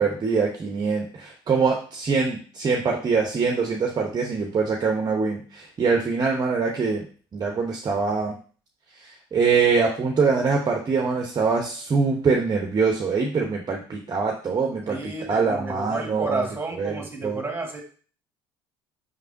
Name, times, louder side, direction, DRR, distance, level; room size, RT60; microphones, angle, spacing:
voice 1, 0.0-7.0 7.3-8.4 8.9-17.4, right 5 dB, 35° right, 1 dB, 0.8 m, -24 dB
voice 2, 14.9-17.8, right 2 dB, 20° right, 3 dB, 1.4 m, -31 dB
5.2 x 3.3 x 2.6 m, 0.41 s
hypercardioid pair, 65°, 12 cm